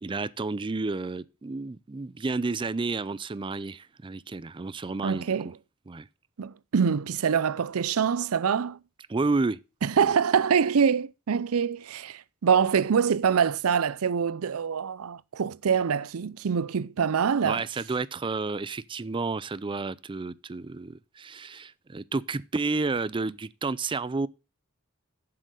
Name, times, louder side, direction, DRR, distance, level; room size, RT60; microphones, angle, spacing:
voice 1, 0.0-5.5 5.9-6.1 9.1-9.6 10.0-10.1 17.4-24.3, right 3 dB, 25° right, 0.4 m, -31 dB
voice 2, 5.0-5.5 6.4-8.8 9.8-17.6, right 7 dB, 85° right, 0.5 m, -25 dB
7.8 x 7.5 x 6.3 m
head